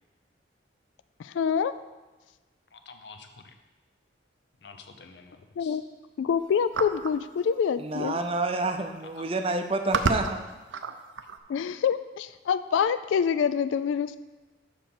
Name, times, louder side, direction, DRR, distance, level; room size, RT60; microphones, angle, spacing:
voice 1, 1.2-1.7 5.6-5.8 6.2-8.2 11.5-14.2, left 7 dB, 85° left, 13 dB, 0.3 m, -26 dB
voice 2, 2.7-3.5 4.6-5.8 9.2-9.3, left 4 dB, 65° left, 6 dB, 0.7 m, -48 dB
sound 1, 6.7-7.2 8.3-8.4 8.6-9.0 9.6-11.4, right 4 dB, 85° right, 0.5 m, -30 dB
voice 3, 7.8-10.4, right 2 dB, 30° right, 6 dB, 0.5 m, -28 dB
7.1 x 5.3 x 5.9 m, 1.2 s
head